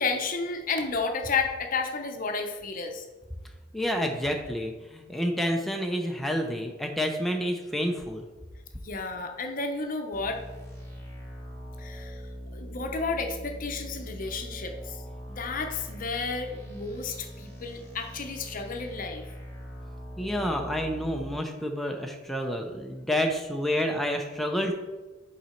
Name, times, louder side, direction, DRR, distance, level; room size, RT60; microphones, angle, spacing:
voice 1, 0.0-3.0 8.8-10.4 11.8-12.2 12.5-15.0 15.3-19.2, left 4 dB, 45° left, 5 dB, 0.8 m, -32 dB
voice 2, 3.7-8.3 20.2-24.7, equal, ahead, 2 dB, 0.5 m, -29 dB
sound 1, 10.1-21.4, equal, 20° left, 2.1 m, -41 dB
7.7 x 4.0 x 4.4 m, 1.2 s
head